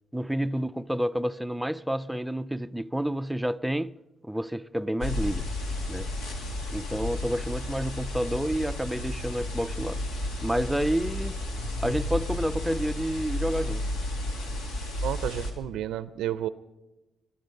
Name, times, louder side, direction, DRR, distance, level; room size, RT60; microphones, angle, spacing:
voice 1, 0.1-3.9 4.2-5.5 5.9-6.1 6.7-10.0 10.4-11.3 11.8-13.8, equal, 5° right, 0.4 m, -29 dB
sound 1, 5.0-15.5, left 1 dB, 90° left, 2.4 m, -32 dB
voice 2, 15.0-16.5, right 12 dB, 85° right, 0.5 m, -31 dB
22.5 x 10.5 x 5.3 m
cardioid pair, 90°, 0 cm